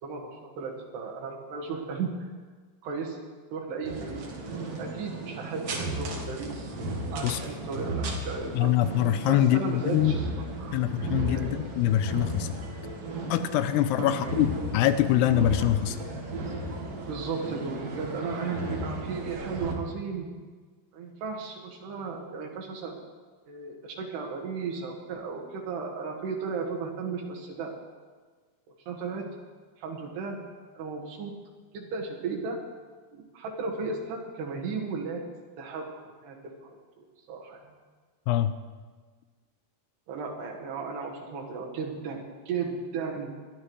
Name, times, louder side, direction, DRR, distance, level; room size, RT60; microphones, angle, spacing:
voice 1, 0.0-2.3 2.8-3.2 3.5-4.3 4.8-6.7 7.1-8.8 9.3-10.2 10.6-10.9 11.3-11.5 14.0-14.3 17.1-20.3 20.9-23.0 23.5-27.7 28.9-29.3 29.8-30.4 30.8-31.3 31.7-32.6 33.3-35.2 35.6-35.9 36.2-37.6 40.1-43.3, right 4 dB, 80° right, 0 dB, 3.8 m, -35 dB
sound 1, 3.8-19.7, right 2 dB, 55° right, 1.7 m, -35 dB
voice 2, 8.5-10.1 10.7-12.5 13.3-16.0 38.3-38.5, left 12 dB, 90° left, 11 dB, 2.7 m, -24 dB
21.0 x 12.5 x 3.2 m, 1.5 s
omnidirectional pair, 4.7 m